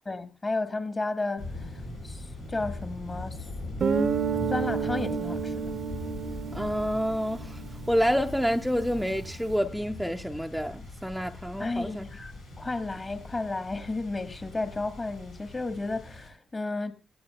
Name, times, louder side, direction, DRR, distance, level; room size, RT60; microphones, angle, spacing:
voice 1, 0.1-1.7 2.0-3.5 4.3-5.7 11.6-16.9, left 3 dB, 35° left, 1.7 m, -33 dB
sound 1, 1.4-16.3, left 1 dB, 90° left, 5.0 m, -41 dB
Guitar, 3.8-8.4, right 6 dB, 55° right, 0.8 m, -30 dB
voice 2, 6.5-12.1, equal, ahead, 0.7 m, -28 dB
17.5 x 15.5 x 2.4 m
hypercardioid pair, 40°, 0 cm